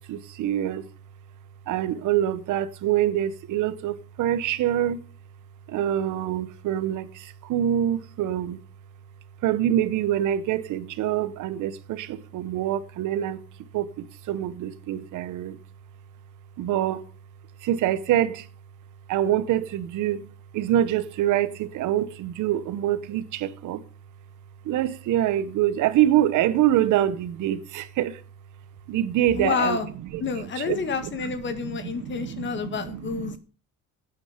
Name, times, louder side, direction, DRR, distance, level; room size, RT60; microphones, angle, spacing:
voice 1, 0.1-0.9 1.7-5.0 5.7-8.6 9.4-13.4 13.7-13.9 14.3-15.6 16.6-17.0 17.6-18.5 19.1-20.2 20.5-23.8 24.6-28.2 28.9-29.8 30.7-30.8 31.2-31.3 31.6-33.4, right 12 dB, 70° right, 1.1 m, -25 dB
voice 2, 29.3-29.9 30.2-33.4, left 5 dB, 35° left, 1.9 m, -28 dB
12.5 x 9.3 x 5.1 m
cardioid pair, 160°, 32 cm